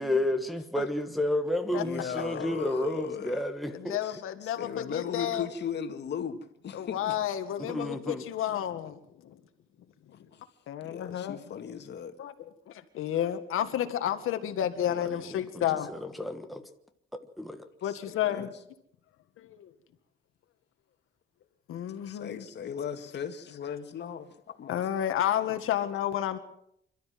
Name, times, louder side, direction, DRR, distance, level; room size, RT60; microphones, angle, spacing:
voice 1, 0.0-4.0 7.6-8.2 15.1-15.4 15.9-16.6 17.4-17.7, left 1 dB, ahead, 1.4 m, -31 dB
voice 2, 1.7-3.4 4.0-7.2 10.1-10.4 10.8-12.1 17.8-18.5 22.1-24.8 25.5-25.6, left 7 dB, 55° left, 2.2 m, -37 dB
voice 3, 3.7-5.5 6.7-9.4 10.7-11.4 12.2-12.3 12.7-15.9 17.8-18.5 19.4-19.7 21.7-22.4 24.7-26.4, left 11 dB, 85° left, 1.9 m, -31 dB
26.5 x 13.0 x 7.7 m
cardioid pair, 150°, 21 cm